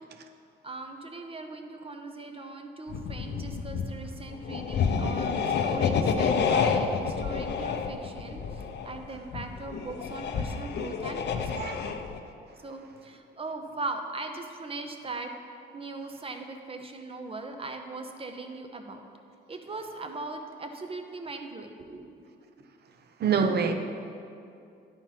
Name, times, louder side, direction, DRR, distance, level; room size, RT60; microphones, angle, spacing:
voice 1, 0.6-12.0 12.6-15.3 15.7-19.0 19.5-22.2 23.4-23.7, right 3 dB, 30° right, 5 dB, 0.8 m, -39 dB
sound 1, 2.9-12.2, left 6 dB, 60° left, 0.6 m, -29 dB
voice 2, 23.2-23.7, right 6 dB, 55° right, 6 dB, 0.8 m, -25 dB
10.5 x 4.4 x 5.8 m, 2.6 s
cardioid pair, 90°, 20 cm